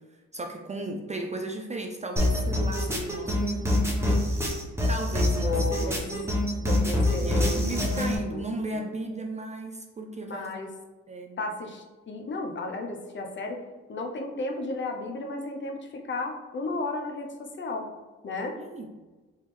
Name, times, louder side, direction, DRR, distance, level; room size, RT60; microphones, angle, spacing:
voice 1, 0.3-3.8 4.9-6.3 7.2-10.5 11.1-11.4 18.6-18.9, right 2 dB, 25° right, 3 dB, 0.4 m, -35 dB
sound 1, 2.2-8.2, left 1 dB, 10° right, 0.9 m, -25 dB
voice 2, 5.3-5.9 6.7-8.4 8.7-8.8 10.3-10.7 11.4-13.6 13.9-17.9 18.2-18.6, left 2 dB, 40° left, 3 dB, 0.6 m, -33 dB
3.4 x 3.2 x 3.1 m, 1.2 s
cardioid pair, 90°, 30 cm